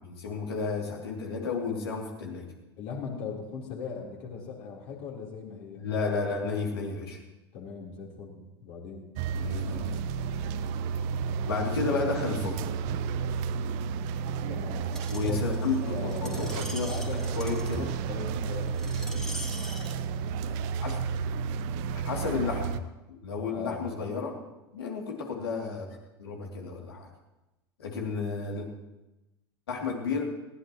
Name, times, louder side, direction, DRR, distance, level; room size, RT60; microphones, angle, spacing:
voice 1, 0.0-2.5 5.8-7.2 9.3-9.9 11.5-12.6 15.1-17.0 17.4-17.9 20.8-21.0 22.0-22.8 23.2-24.4 24.7-25.9 26.2-27.1 27.8-28.7 29.7-30.3, left 4 dB, 75° left, 0 dB, 3.0 m, -32 dB
voice 2, 2.8-5.9 7.5-9.1 14.5-16.5 16.8-17.5 18.0-19.4 23.5-23.9, left 5 dB, 50° left, -2 dB, 4.0 m, -40 dB
sound 1, 9.2-22.8, right 6 dB, 50° right, 0.8 m, -32 dB
Screech, 14.9-19.9 20.6-20.7, equal, 5° left, 2.1 m, -43 dB
20.0 x 16.5 x 3.1 m, 1.0 s
figure-of-eight pair, 80°, 13 cm